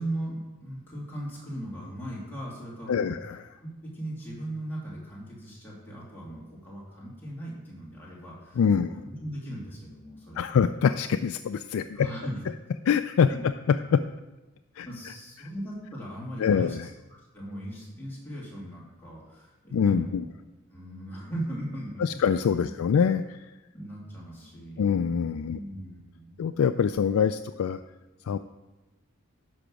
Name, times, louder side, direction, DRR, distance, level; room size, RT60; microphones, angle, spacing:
voice 1, 0.0-3.2 3.5-10.5 11.9-12.4 13.3-13.4 14.8-16.9 17.3-20.3 20.7-22.2 22.6-22.7 23.7-24.9 25.5-26.4, right 1 dB, 10° left, -6 dB, 2.7 m, -38 dB
voice 2, 2.9-3.4 8.6-8.9 10.4-12.1 12.9-14.0 14.8-15.1 15.4-15.5 16.4-16.9 19.7-20.2 22.0-23.5 24.8-25.6 26.4-27.8 28.3-28.4, left 7 dB, 90° left, 9 dB, 0.3 m, -25 dB
10.0 x 5.8 x 6.2 m, 1.1 s
head